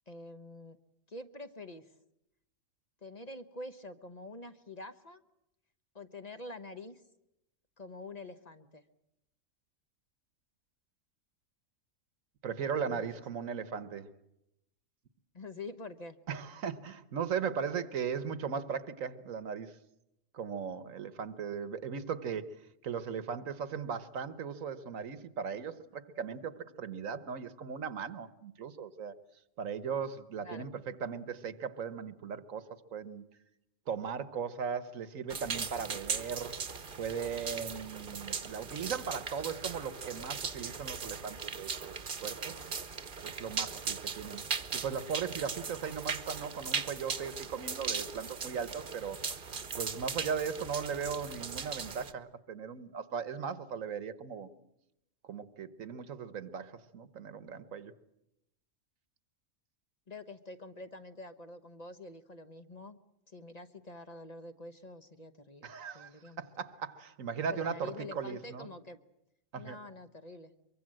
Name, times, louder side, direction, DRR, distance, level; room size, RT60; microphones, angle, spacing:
voice 1, 0.1-0.8 1.1-1.9 3.0-5.2 5.9-7.0 7.8-8.8 12.9-13.1 15.3-16.2 30.4-30.7 60.1-63.0 63.3-66.5 67.5-69.0 69.6-70.5, left 2 dB, 35° left, 9 dB, 1.0 m, -46 dB
voice 2, 12.4-14.1 16.3-19.8 20.3-22.5 22.8-29.1 29.6-33.2 33.9-36.6 37.0-41.9 42.2-42.6 43.2-44.4 44.7-49.2 49.7-54.5 55.2-57.9 65.6-68.7 69.5-69.8, right 6 dB, 85° right, 14 dB, 1.5 m, -38 dB
sound 1, 35.3-52.1, right 5 dB, 45° right, 1.2 m, -39 dB
24.0 x 23.5 x 7.7 m, 0.85 s
omnidirectional pair, 1.3 m